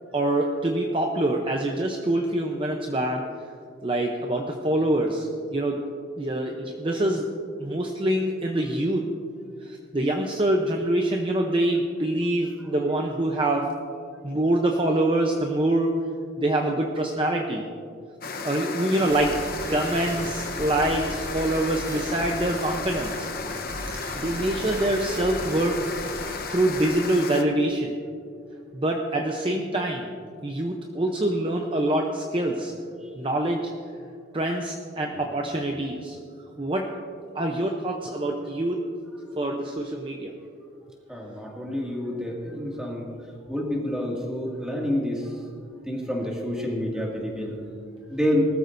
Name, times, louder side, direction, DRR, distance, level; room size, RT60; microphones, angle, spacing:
voice 1, 0.1-3.2 3.8-5.8 6.2-7.3 7.6-9.0 9.6-13.7 14.2-15.9 16.4-17.7 18.4-19.4 19.7-23.3 24.2-26.2 26.5-27.9 28.7-30.1 30.4-32.7 33.2-33.7 34.3-36.2 36.6-36.9 37.3-38.8 39.4-40.3, right 1 dB, 25° right, 2 dB, 0.7 m, -25 dB
sound 1, 18.2-27.4, left 4 dB, 50° left, 0.9 m, -33 dB
sound 2, 19.1-26.4, right 1 dB, 45° right, 1.3 m, -39 dB
voice 2, 41.1-43.1 43.5-45.3 45.9-47.5 48.1-48.5, left 1 dB, 5° right, -3 dB, 2.1 m, -28 dB
20.0 x 13.5 x 2.6 m, 2.4 s
head